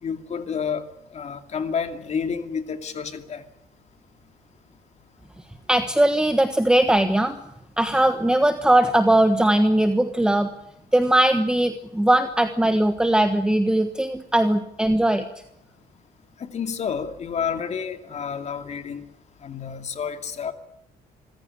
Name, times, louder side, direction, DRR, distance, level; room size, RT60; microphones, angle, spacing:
voice 1, 0.0-0.9 1.1-3.4 16.4-19.0 19.4-20.5, left 6 dB, 40° left, 7 dB, 2.6 m, -29 dB
voice 2, 5.7-7.4 7.8-10.5 10.9-15.2, right 1 dB, 5° right, 8 dB, 1.3 m, -20 dB
26.0 x 15.5 x 9.8 m, 0.77 s
cardioid pair, 110°, 17 cm